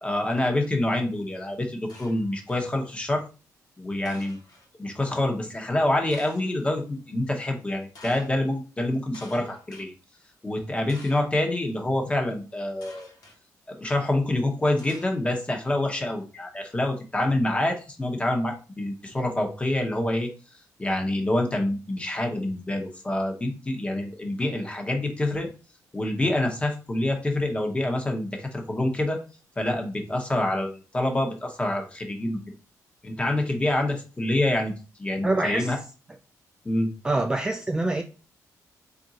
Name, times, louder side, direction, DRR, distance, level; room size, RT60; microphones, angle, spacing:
voice 1, 0.0-3.2 3.8-4.4 4.8-9.9 10.4-13.1 13.7-20.3 20.8-25.5 25.9-29.2 29.6-32.4 33.0-34.7 35.0-35.8 36.6-36.9, left 1 dB, 20° left, 1.0 m, -26 dB
sound 1, 1.9-2.7 4.0-4.7 6.1-6.6 7.9-8.3 9.1-9.9 10.9-11.4 12.8-13.4 14.8-15.5, left 2 dB, 80° left, 1.1 m, -49 dB
voice 2, 35.2-35.8 37.0-38.0, right 2 dB, 10° right, 0.3 m, -25 dB
3.7 x 2.6 x 4.0 m
cardioid pair, 105°, 6 cm